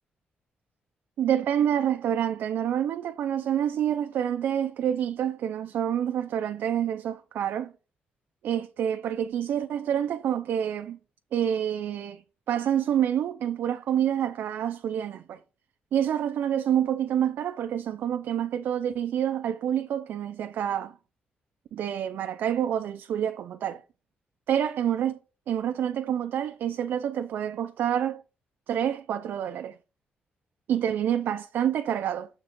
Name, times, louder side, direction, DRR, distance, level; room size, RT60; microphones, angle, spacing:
voice 1, 1.2-7.7 8.4-11.0 11.3-12.2 12.5-15.4 15.9-20.9 21.7-23.8 24.5-25.2 25.5-28.2 28.7-29.8 30.7-32.3, right 9 dB, 70° right, 0.4 m, -27 dB
7.2 x 3.5 x 5.1 m
wide cardioid pair, 180°, 4 cm